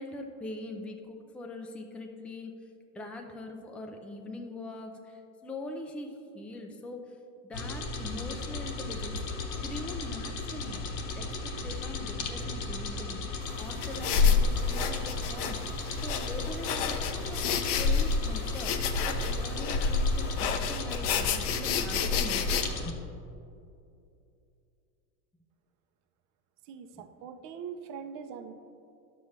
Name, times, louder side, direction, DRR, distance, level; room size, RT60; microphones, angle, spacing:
voice 1, 0.0-2.5 2.9-7.2 7.4-9.2 9.6-10.8 11.2-13.2 13.6-15.6 16.0-23.0, left 2 dB, 5° left, 3 dB, 0.4 m, -42 dB
sound 1, 7.5-22.9, left 3 dB, 50° left, 1.1 m, -36 dB
sound 2, 13.4-20.7, right 2 dB, 20° right, 1.4 m, -50 dB
sound 3, 13.8-22.6, left 5 dB, 70° left, 0.8 m, -28 dB
voice 2, 26.6-28.5, right 7 dB, 55° right, 8 dB, 0.8 m, -42 dB
11.0 x 7.3 x 3.2 m, 2.6 s
supercardioid pair, 130°, 38 cm